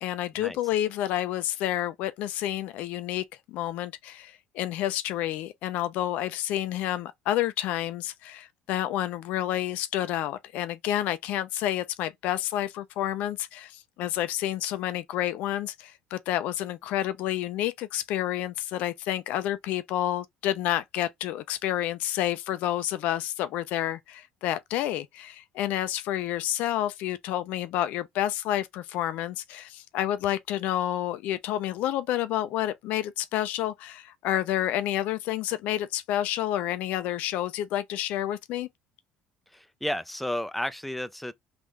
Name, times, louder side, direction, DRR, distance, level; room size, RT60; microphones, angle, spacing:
voice 1, 0.0-38.7, left 13 dB, 70° left, 0.4 m, -29 dB
voice 2, 39.5-41.3, left 1 dB, 5° left, 0.4 m, -32 dB
3.6 x 2.5 x 3.1 m
supercardioid pair, 75°, 3 cm